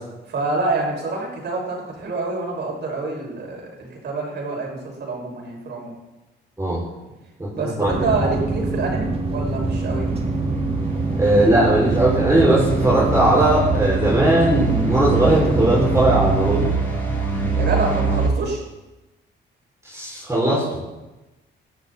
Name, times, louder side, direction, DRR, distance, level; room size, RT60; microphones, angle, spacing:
voice 1, 0.3-5.9 7.5-10.1 17.6-18.6, right 3 dB, 60° right, -1 dB, 6.0 m, -27 dB
sound 1, 7.9-16.7, right 3 dB, 30° right, 2.4 m, -24 dB
sound 2, 8.7-18.3, right 4 dB, 10° left, 6.8 m, -26 dB
voice 2, 11.2-16.8 19.8-20.8, right 1 dB, 15° right, -6 dB, 5.7 m, -18 dB
19.0 x 13.0 x 4.2 m, 1.1 s
cardioid pair, 90°, 20 cm